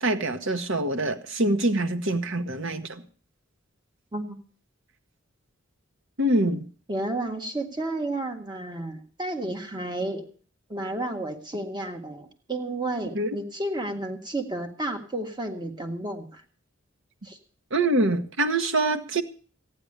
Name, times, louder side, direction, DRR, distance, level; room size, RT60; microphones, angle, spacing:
voice 1, 0.0-3.0 6.2-6.6 13.1-13.3 17.7-19.2, right 2 dB, 65° right, 7 dB, 1.3 m, -25 dB
voice 2, 4.1-4.4 6.9-10.2 10.7-16.4 17.2-17.4, right 2 dB, 20° right, 4 dB, 1.7 m, -32 dB
15.0 x 9.9 x 6.7 m, 0.43 s
head